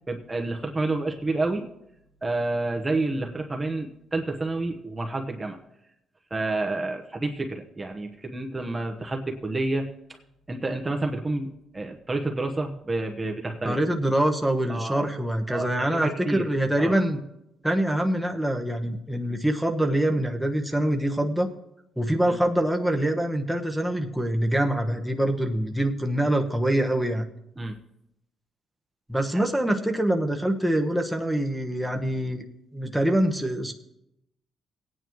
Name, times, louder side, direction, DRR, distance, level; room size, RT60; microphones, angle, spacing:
voice 1, 0.1-1.6 2.2-5.6 6.3-9.9 10.5-13.8 14.7-15.1 15.5-16.4 16.8-17.0 22.3-22.4 27.6-27.7 29.3-29.4, right 2 dB, 20° right, 2 dB, 1.0 m, -29 dB
voice 2, 13.6-17.2 17.6-21.5 22.0-27.2 29.1-32.4 32.7-33.7, right 1 dB, ahead, 2 dB, 1.2 m, -25 dB
17.5 x 9.3 x 3.1 m, 0.83 s
cardioid pair, 90°, 0 cm